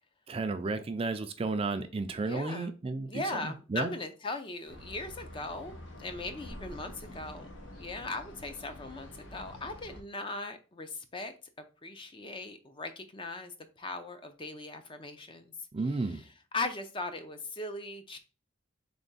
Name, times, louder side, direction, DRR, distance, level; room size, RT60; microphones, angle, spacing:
voice 1, 0.3-3.9 15.7-16.2, right 3 dB, 30° right, 9 dB, 0.4 m, -33 dB
voice 2, 2.2-2.7 3.1-15.5 16.0-16.2 16.5-18.2, left 2 dB, 25° left, 8 dB, 0.5 m, -39 dB
sound 1, 4.7-10.0, left 1 dB, 75° left, 1.0 m, -47 dB
3.7 x 3.4 x 4.0 m, 0.34 s
head